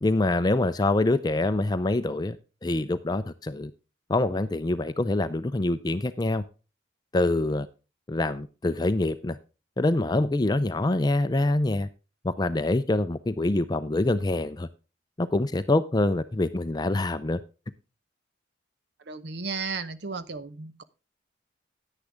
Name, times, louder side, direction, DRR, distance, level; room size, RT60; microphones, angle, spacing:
voice 1, 0.0-2.4 2.6-3.7 4.1-6.4 7.1-7.7 8.1-9.4 9.8-11.9 12.2-14.7 15.2-17.4, left 2 dB, 20° left, 0.4 m, -25 dB
voice 2, 19.1-20.8, right 4 dB, 60° right, 0.8 m, -34 dB
10.0 x 9.9 x 3.4 m
head